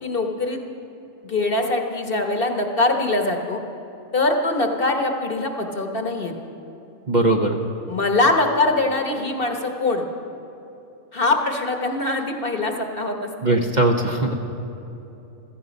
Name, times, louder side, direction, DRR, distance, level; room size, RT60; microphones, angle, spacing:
voice 1, 0.0-0.6 1.2-3.6 4.1-6.3 7.9-10.0 11.1-13.3, left 2 dB, 45° left, 3 dB, 1.3 m, -22 dB
voice 2, 7.1-7.6 13.4-14.3, right 2 dB, 35° right, 2 dB, 1.0 m, -19 dB
16.5 x 14.0 x 5.3 m, 2.9 s
omnidirectional pair, 1.4 m